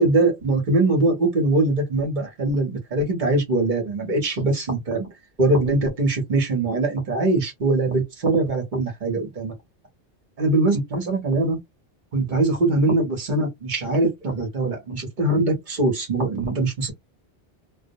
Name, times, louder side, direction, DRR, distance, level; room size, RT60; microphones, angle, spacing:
voice 1, 0.0-5.1 5.4-9.5 10.4-11.6 12.1-16.9, right 2 dB, 45° right, 1.0 m, -22 dB
2.2 x 2.1 x 2.6 m
omnidirectional pair, 1.1 m